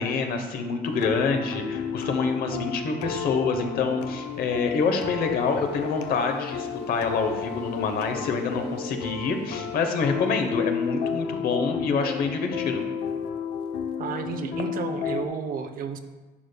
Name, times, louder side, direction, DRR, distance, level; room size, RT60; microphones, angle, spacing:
voice 1, 0.0-12.8, left 4 dB, 65° left, 6 dB, 0.8 m, -26 dB
sound 1, 0.8-15.3, left 7 dB, 85° left, 0.5 m, -32 dB
voice 2, 14.0-16.0, right 6 dB, 55° right, 7 dB, 0.6 m, -32 dB
10.5 x 5.0 x 2.2 m, 1.2 s
cardioid pair, 110°, 17 cm